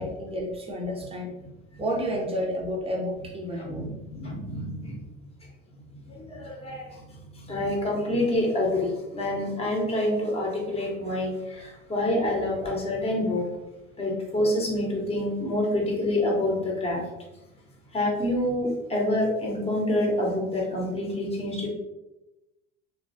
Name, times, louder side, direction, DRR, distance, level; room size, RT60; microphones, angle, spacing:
voice 1, 0.0-1.3 1.8-3.9, equal, 15° right, -2 dB, 0.8 m, -30 dB
voice 2, 3.6-5.0 6.1-7.0 7.4-13.4 14.0-17.0 17.9-21.7, left 1 dB, 15° left, -2 dB, 1.0 m, -27 dB
2.9 x 2.4 x 2.7 m, 0.98 s
hypercardioid pair, 70°, 39 cm